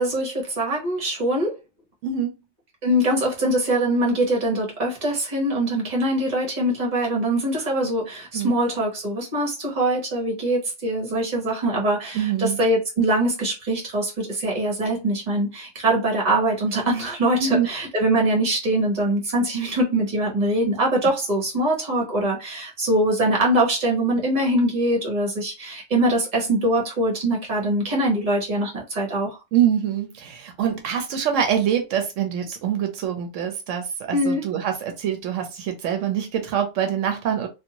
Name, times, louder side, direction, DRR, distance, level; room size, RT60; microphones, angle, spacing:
voice 1, 0.0-1.6 2.8-29.4 34.1-34.5, right 1 dB, 35° right, 1.1 m, -23 dB
voice 2, 2.0-2.3 8.3-8.6 12.1-12.6 17.4-17.7 29.5-37.5, right 9 dB, 85° right, 1.0 m, -24 dB
2.5 x 2.4 x 2.8 m
omnidirectional pair, 1.3 m